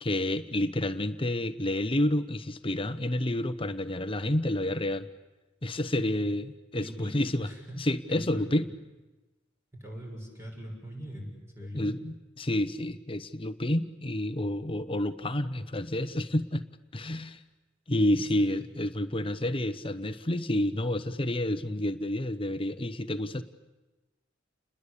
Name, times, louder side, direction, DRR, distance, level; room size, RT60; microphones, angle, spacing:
voice 1, 0.0-5.1 5.6-7.5 7.8-8.7 11.7-16.6 16.9-17.4 17.9-23.4, left 1 dB, 30° left, 11 dB, 1.1 m, -29 dB
voice 2, 6.7-7.8 8.1-8.7 9.7-11.3 11.6-11.9 18.1-18.5, right 1 dB, 15° right, 1 dB, 6.8 m, -42 dB
30.0 x 21.0 x 8.5 m, 1.1 s
head